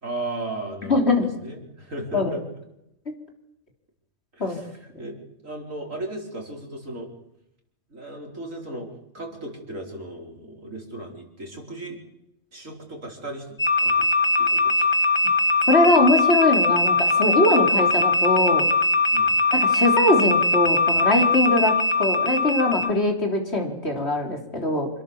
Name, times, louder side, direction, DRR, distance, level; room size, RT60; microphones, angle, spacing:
voice 1, 0.0-1.1 1.4-2.4 4.3-7.1 7.9-8.9 9.1-12.0 12.5-14.1 14.4-14.8 19.1-19.4, right 1 dB, 80° right, 1 dB, 5.2 m, -36 dB
voice 2, 0.9-1.3 2.1-2.4 4.4-4.6 15.7-18.7 19.5-24.9, left 2 dB, 55° left, 2 dB, 4.2 m, -21 dB
sound 1, 13.6-22.9, left 2 dB, 20° left, 1.6 m, -21 dB
27.5 x 22.0 x 7.4 m, 0.84 s
omnidirectional pair, 1.3 m